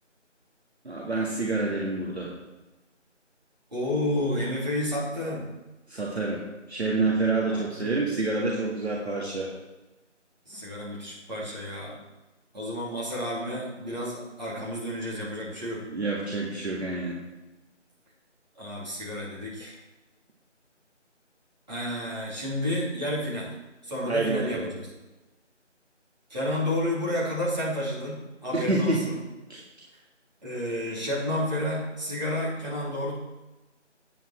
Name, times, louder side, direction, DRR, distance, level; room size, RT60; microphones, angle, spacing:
voice 1, 0.8-2.3 5.9-6.4 6.7-9.5 15.9-17.2 19.6-19.7 24.1-24.7 28.5-29.0 29.5-29.6, right 3 dB, 60° right, -3 dB, 1.9 m, -27 dB
voice 2, 3.7-5.5 7.5-7.9 10.4-12.0 12.5-15.8 18.5-19.8 21.7-23.5 23.8-24.9 26.3-29.2 30.4-33.2, left 1 dB, 35° right, -7 dB, 3.3 m, -31 dB
9.1 x 8.7 x 4.4 m, 1.1 s
figure-of-eight pair, 170°, 36 cm